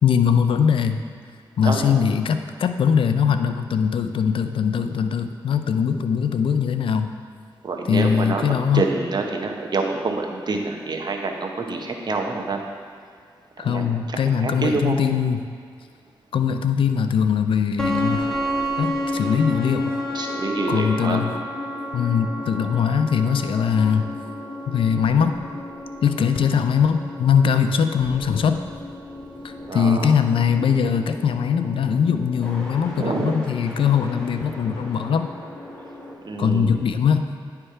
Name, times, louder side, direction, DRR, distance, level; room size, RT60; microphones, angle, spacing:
voice 1, 0.0-1.0 1.6-7.1 7.9-8.8 13.6-15.4 16.3-18.2 18.8-19.9 20.7-21.3 21.9-24.1 24.7-25.4 26.0-28.6 29.4-35.3 36.4-37.3, left 7 dB, 70° left, 8 dB, 0.4 m, -21 dB
voice 2, 1.6-2.0 7.6-12.6 13.6-15.0 20.1-21.2 29.7-30.1 33.0-33.3 36.2-36.9, right 3 dB, 50° right, 2 dB, 0.9 m, -27 dB
sound 1, 17.8-36.1, left 1 dB, 10° left, 1.6 m, -32 dB
9.8 x 3.3 x 4.4 m, 2.1 s
cardioid pair, 55°, 9 cm